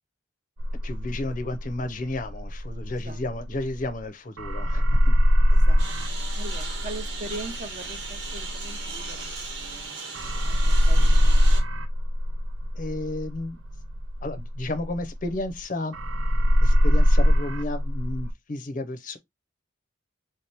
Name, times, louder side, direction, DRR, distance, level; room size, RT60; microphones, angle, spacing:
sound 1, 0.6-4.1 4.4-9.8 10.1-15.6 15.9-18.3, equal, 80° right, 0.6 m, -22 dB
voice 1, 0.8-5.2 12.7-13.6 14.2-16.0 16.6-19.2, left 2 dB, 40° left, 0.6 m, -32 dB
voice 2, 2.9-3.3 5.5-9.3 9.6-10.0 10.5-11.7, right 2 dB, 35° right, 0.6 m, -41 dB
Engine, 5.8-11.6, right 4 dB, 60° right, 1.1 m, -37 dB
3.3 x 2.8 x 3.4 m
head